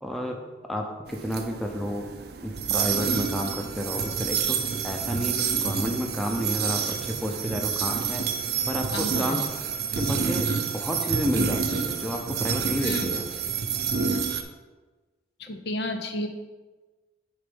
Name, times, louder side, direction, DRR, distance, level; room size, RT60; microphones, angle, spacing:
voice 1, 0.0-0.4 0.7-2.1 2.4-4.6 4.8-8.2 8.7-9.4 9.9-13.2, equal, ahead, 1 dB, 0.7 m, -31 dB
sound 1, 1.1-14.4, right 6 dB, 55° right, 0.6 m, -28 dB
voice 2, 8.9-9.4 12.8-13.1 15.4-16.3, left 1 dB, 60° left, 6 dB, 0.7 m, -31 dB
8.9 x 3.9 x 5.4 m, 1.3 s
head